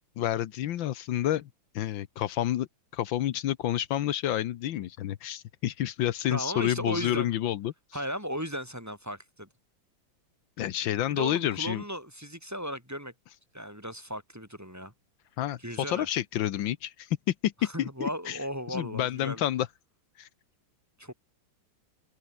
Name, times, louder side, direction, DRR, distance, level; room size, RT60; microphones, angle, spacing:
voice 1, 0.2-1.5 1.7-2.7 2.9-8.0 10.6-11.8 15.4-18.4 18.7-19.7 20.2-20.3, left 12 dB, 80° left, 1.6 m, -29 dB
voice 2, 6.3-7.4 7.9-9.5 11.1-13.1 13.5-14.9 15.6-16.1 17.6-19.4 21.0-21.1, equal, 10° right, 4.1 m, -36 dB
omnidirectional pair, 2.1 m